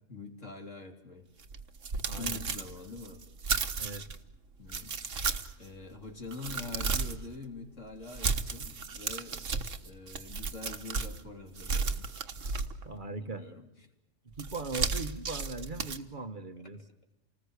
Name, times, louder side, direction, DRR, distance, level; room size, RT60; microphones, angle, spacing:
voice 1, 0.1-1.3 2.1-3.2 4.0-4.1 4.6-5.2 5.6-9.6 9.8-12.1 13.2-13.7, left 3 dB, 75° left, 4 dB, 3.7 m, -45 dB
sound 1, 1.4-4.2 4.7-5.7 6.1-7.3 8.1-11.2 11.6-13.0 14.4-16.0, right 5 dB, 75° right, 1.7 m, -34 dB
voice 2, 2.1-2.4 3.8-4.1 12.8-13.4 14.4-16.8, right 3 dB, 40° right, 9 dB, 1.4 m, -39 dB
29.0 x 20.0 x 8.2 m, 0.93 s
omnidirectional pair, 1.3 m